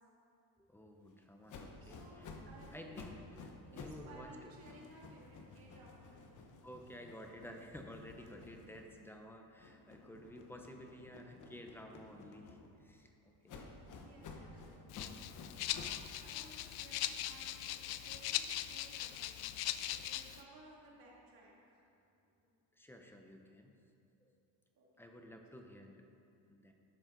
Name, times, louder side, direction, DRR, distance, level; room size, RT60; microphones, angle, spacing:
voice 1, 0.6-2.3 2.7-4.5 6.6-13.7 22.7-23.7 24.2-24.3 25.0-26.0 26.5-26.7, equal, 5° left, 3 dB, 0.5 m, -53 dB
sound 1, 1.5-4.1 4.4-9.2 9.6-12.9 13.5-16.1, left 4 dB, 45° left, 0.9 m, -53 dB
voice 2, 1.8-3.1 3.6-6.4 14.0-17.6 18.0-21.9 22.2-22.4 24.8-25.1, right 2 dB, 50° right, -4 dB, 2.1 m, -59 dB
Rattle (instrument), 14.9-20.4, left 13 dB, 60° left, 0.5 m, -40 dB
12.0 x 7.3 x 3.8 m, 2.6 s
cardioid pair, 150°, 45 cm